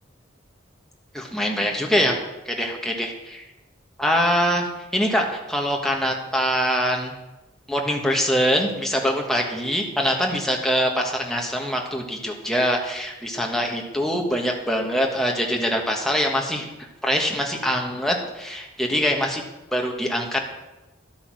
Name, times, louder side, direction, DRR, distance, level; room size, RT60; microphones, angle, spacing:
voice 1, 1.1-2.2 2.4-3.4 4.0-7.1 7.7-16.7 17.0-19.4 19.7-20.5, equal, ahead, 0 dB, 1.5 m, -23 dB
11.5 x 8.7 x 6.3 m, 1.0 s
head